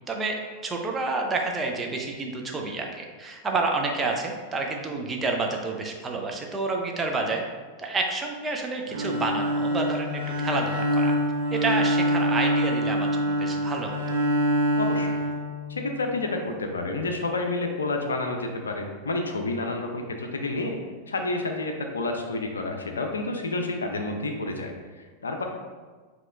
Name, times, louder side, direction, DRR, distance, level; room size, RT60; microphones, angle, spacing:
voice 1, 0.1-7.4 7.8-11.1 11.5-14.0, right 3 dB, 15° right, 1 dB, 0.6 m, -29 dB
Bowed string instrument, 8.9-16.1, equal, 50° right, 0.8 m, -25 dB
voice 2, 14.8-15.2 15.7-20.8 21.1-25.4, left 2 dB, 70° left, 3 dB, 0.5 m, -29 dB
7.5 x 2.9 x 2.4 m, 1.4 s
figure-of-eight pair, 90°, 0 cm